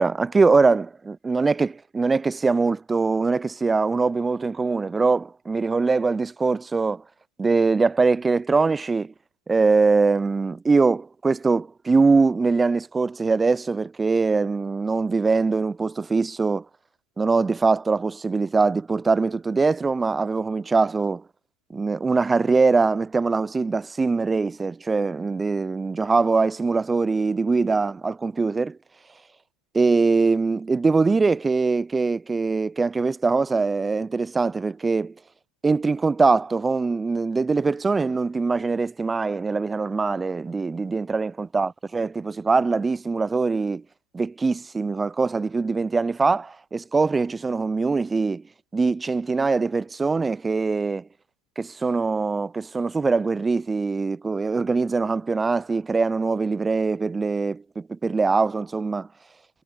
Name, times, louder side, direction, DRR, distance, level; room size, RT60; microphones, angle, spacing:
voice 1, 0.0-7.0 7.4-9.1 9.5-16.7 17.2-21.2 21.7-28.8 29.7-35.1 35.6-43.8 44.1-48.4 48.7-51.1 51.6-59.1, right 4 dB, 15° right, 0.3 m, -22 dB
hypercardioid pair, 95°, 0 cm